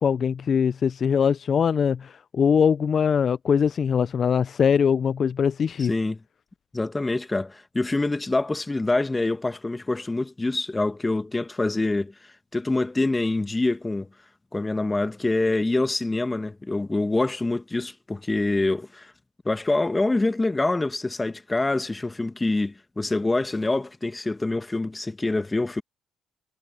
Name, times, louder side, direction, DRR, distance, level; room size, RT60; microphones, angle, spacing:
voice 1, 0.0-5.9, left 7 dB, 50° left, 0.4 m, -22 dB
voice 2, 5.8-6.2 6.7-12.1 12.5-14.1 14.5-19.1 19.4-25.8, left 2 dB, 15° left, 1.3 m, -25 dB
cardioid pair, 85°, 0 cm